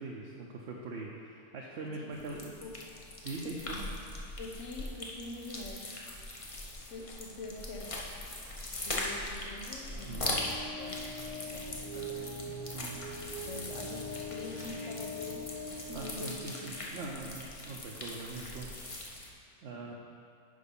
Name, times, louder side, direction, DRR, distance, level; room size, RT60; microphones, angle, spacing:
voice 1, 0.0-2.5 3.2-3.9 10.1-10.3 12.7-13.0 15.9-18.8 19.6-19.9, right 3 dB, 65° right, -2 dB, 0.9 m, -42 dB
voice 2, 1.8-2.2 2.6-2.7 3.4-3.5 4.4-5.9 6.8-8.1 8.8-12.6 13.5-17.1 19.7-19.9, left 2 dB, 85° left, 1 dB, 1.2 m, -45 dB
sound 1, 2.1-19.3, left 1 dB, 30° left, 0.7 m, -41 dB
sound 2, 9.9-16.8, left 1 dB, 35° right, 0.8 m, -42 dB
6.5 x 4.7 x 5.3 m, 2.4 s
omnidirectional pair, 1.3 m